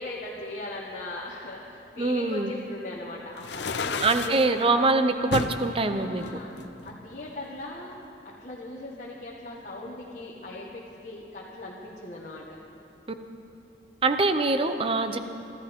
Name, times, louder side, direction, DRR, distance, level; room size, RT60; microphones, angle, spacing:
voice 1, 0.0-4.8 5.8-6.6 6.8-7.9 8.4-12.4, left 2 dB, 45° left, -5 dB, 1.5 m, -39 dB
voice 2, 2.0-2.5 4.0-6.2 14.0-15.2, right 3 dB, 30° right, 8 dB, 0.7 m, -24 dB
sound 1, 3.4-4.5 5.3-5.6 6.2-7.3, left 4 dB, 70° left, 0.6 m, -32 dB
25.5 x 13.5 x 3.6 m, 2.8 s
head